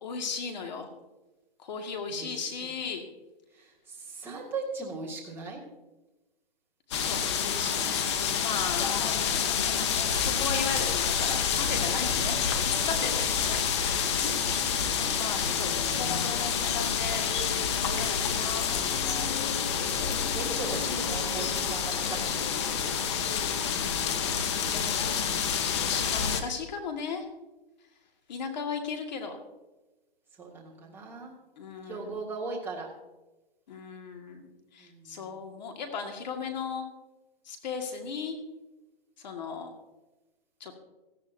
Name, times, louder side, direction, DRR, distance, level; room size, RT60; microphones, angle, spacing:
voice 1, 0.0-0.9 1.6-3.1 6.9-7.8 8.4-9.0 9.5-9.8 10.1-14.2 15.0-17.2 17.7-19.3 23.6-25.0 25.8-27.3 28.3-29.4 31.6-32.2 33.7-36.8 37.5-38.4 39.2-39.7 40.6-40.7, left 5 dB, 45° left, 4 dB, 2.0 m, -37 dB
voice 2, 4.2-5.6 8.7-9.4 14.1-14.8 20.3-22.5 25.0-25.6 30.4-31.3 31.9-32.9 34.8-35.1, right 3 dB, 5° right, -5 dB, 2.0 m, -39 dB
sound 1, 6.9-26.4, left 7 dB, 30° left, 0.9 m, -28 dB
17.5 x 14.0 x 2.7 m, 1.1 s
hypercardioid pair, 160°, 30 cm